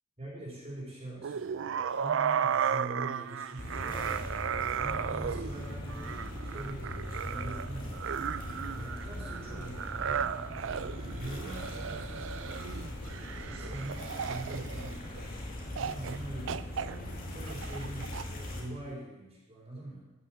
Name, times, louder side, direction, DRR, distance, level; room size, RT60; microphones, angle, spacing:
voice 1, 0.2-4.2 4.7-8.5 8.8-10.4 11.0-12.5 13.5-15.3 15.7-20.0, right 1 dB, 30° right, -6 dB, 3.9 m, -44 dB
sound 1, 1.2-15.3 15.8-16.2 16.5-18.2, right 7 dB, 65° right, 0.4 m, -35 dB
sound 2, 3.6-18.6, left 1 dB, 45° left, 2.3 m, -40 dB
13.0 x 6.7 x 7.4 m, 1.0 s
head